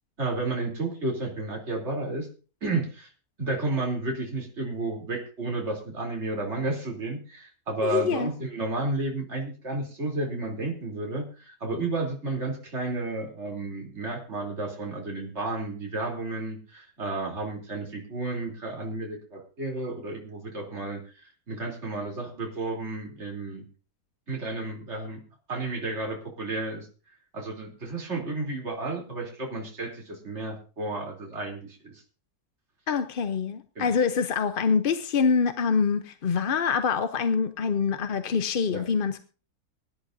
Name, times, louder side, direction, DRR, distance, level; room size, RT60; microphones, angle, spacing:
voice 1, 0.2-2.3 2.6-3.1 3.4-23.6 24.3-25.2 25.5-26.9 27.3-32.0 33.8-33.9 38.7-38.9, right 2 dB, 45° right, 3.7 m, -32 dB
voice 2, 7.8-8.3 32.9-39.2, left 6 dB, 45° left, 0.7 m, -25 dB
24.0 x 11.0 x 2.6 m
omnidirectional pair, 1.6 m